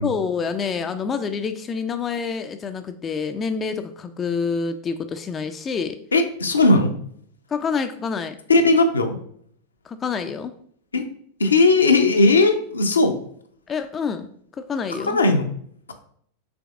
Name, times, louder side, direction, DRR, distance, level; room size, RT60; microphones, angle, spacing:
voice 1, 0.0-6.0 7.5-8.4 9.8-10.5 13.7-15.2, left 5 dB, 20° left, 8 dB, 0.3 m, -27 dB
voice 2, 6.1-6.9 8.5-9.1 10.9-11.0 11.4-13.2 14.9-15.5 15.9-16.0, left 2 dB, 75° left, 5 dB, 0.5 m, -17 dB
5.9 x 3.4 x 2.4 m, 0.63 s
figure-of-eight pair, 90°, 0 cm